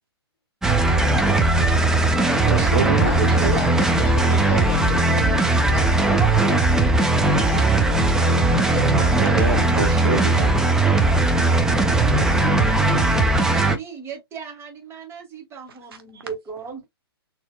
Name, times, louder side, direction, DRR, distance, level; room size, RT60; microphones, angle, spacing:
sound 1, 0.6-13.8, right 2 dB, 5° right, 0.5 m, -18 dB
voice 1, 2.3-3.6 9.2-10.6 16.1-16.2, right 4 dB, 60° right, 1.1 m, -26 dB
voice 2, 2.9-6.1 7.3-8.0 8.3-9.3, left 5 dB, 40° left, 1.4 m, -35 dB
voice 3, 6.1-6.7 7.5-7.8 8.2-9.3 11.8-12.5 13.4-16.9, right 5 dB, 20° right, 1.6 m, -36 dB
4.2 x 2.8 x 2.3 m
hypercardioid pair, 125°, 14 cm